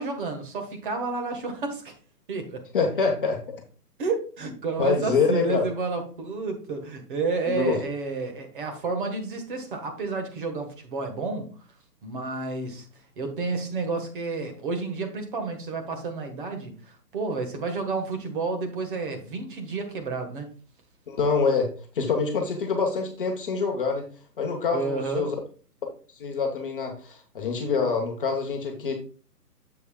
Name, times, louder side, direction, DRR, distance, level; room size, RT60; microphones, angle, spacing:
voice 1, 0.0-1.9 2.3-2.6 4.0-11.5 12.0-12.9 13.2-20.5 24.7-25.3, right 3 dB, 30° right, 5 dB, 1.5 m, -30 dB
voice 2, 2.7-3.4 4.8-5.7 7.5-7.8 21.1-21.7 21.9-24.0 24.4-25.3 26.2-28.9, left 5 dB, 35° left, 2 dB, 1.1 m, -25 dB
8.1 x 7.2 x 2.3 m, 0.39 s
hypercardioid pair, 150°, 49 cm